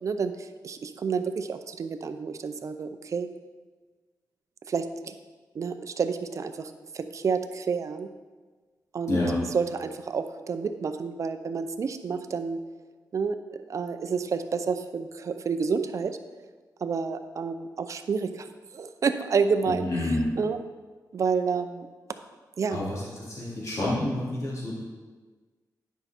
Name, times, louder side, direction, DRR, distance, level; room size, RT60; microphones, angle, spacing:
voice 1, 0.0-3.3 4.7-5.1 5.5-8.1 8.9-9.2 9.5-12.6 13.1-16.5 16.8-18.5 18.7-19.9 20.4-20.6 21.1-21.9 22.6-22.8, right 5 dB, 50° right, 9 dB, 0.5 m, -29 dB
voice 2, 9.1-9.4 19.6-20.2 22.7-24.8, left 1 dB, 50° left, -7 dB, 2.9 m, -29 dB
10.5 x 5.4 x 4.4 m, 1.3 s
wide cardioid pair, 140°, 7 cm